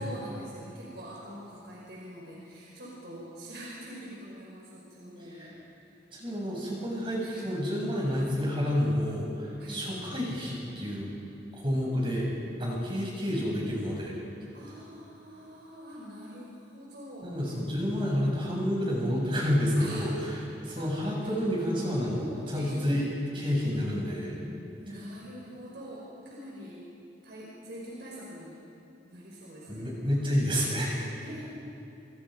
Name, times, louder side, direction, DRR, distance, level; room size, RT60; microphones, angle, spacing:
voice 1, 0.0-5.6 7.2-7.4 9.6-9.8 14.5-17.3 19.8-20.1 20.8-20.9 21.2-21.4 22.1-23.1 24.8-26.8 27.2-28.6 29.0-29.9 31.2-31.4, equal, 65° right, -5 dB, 5.3 m, -44 dB
voice 2, 6.1-11.1 11.6-12.3 12.6-14.1 17.2-23.1 23.3-24.4 29.7-31.1, equal, 30° right, -3 dB, 7.6 m, -29 dB
27.5 x 27.0 x 5.3 m, 2.9 s
head